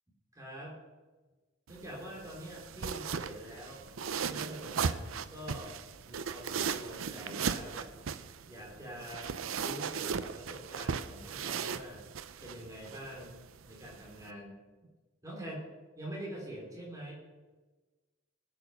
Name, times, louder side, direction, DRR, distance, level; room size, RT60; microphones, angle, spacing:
voice 1, 0.3-0.8 1.7-3.8 4.2-5.7 6.0-7.9 8.5-12.0 12.4-14.6 15.2-15.6 16.0-17.1, right 1 dB, 15° right, -3 dB, 3.5 m, -45 dB
sound 1, 1.7-14.3, right 6 dB, 85° right, 0.6 m, -38 dB
19.5 x 6.9 x 5.7 m, 1.3 s
head